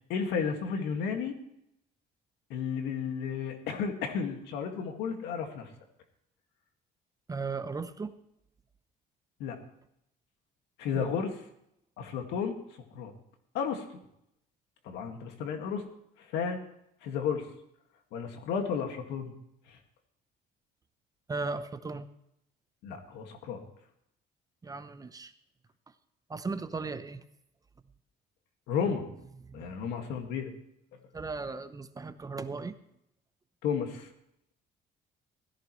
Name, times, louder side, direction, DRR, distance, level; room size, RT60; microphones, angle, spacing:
voice 1, 0.1-1.4 2.5-5.7 9.4-9.6 10.8-11.3 12.0-12.5 12.9-13.1 13.5-13.8 14.8-15.8 16.3-16.6 17.0-17.5 18.1-19.3 19.7-19.8 22.8-23.6 28.7-29.1 29.5-30.5 33.6-34.1, left 6 dB, 90° left, 5 dB, 2.0 m, -32 dB
voice 2, 7.3-8.1 10.9-11.2 21.3-22.1 24.6-25.3 26.3-27.2 29.4-29.7 31.1-32.7, right 4 dB, 20° right, 11 dB, 0.8 m, -36 dB
16.5 x 14.5 x 3.2 m, 0.77 s
cardioid pair, 110°, 17 cm